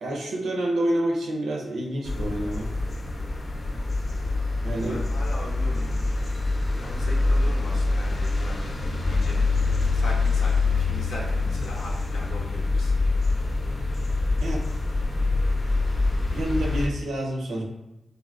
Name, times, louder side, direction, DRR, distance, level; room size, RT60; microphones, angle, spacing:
voice 1, 0.0-2.7 4.6-5.0 14.4-14.6 16.3-17.6, right 1 dB, 90° right, 0 dB, 0.6 m, -28 dB
sound 1, 2.0-16.9, left 3 dB, 45° left, 0.6 m, -25 dB
voice 2, 4.6-6.0 6.8-9.4 9.9-13.0, left 2 dB, 85° left, -2 dB, 0.7 m, -40 dB
3.5 x 2.1 x 2.4 m, 0.96 s
cardioid pair, 50°, 0 cm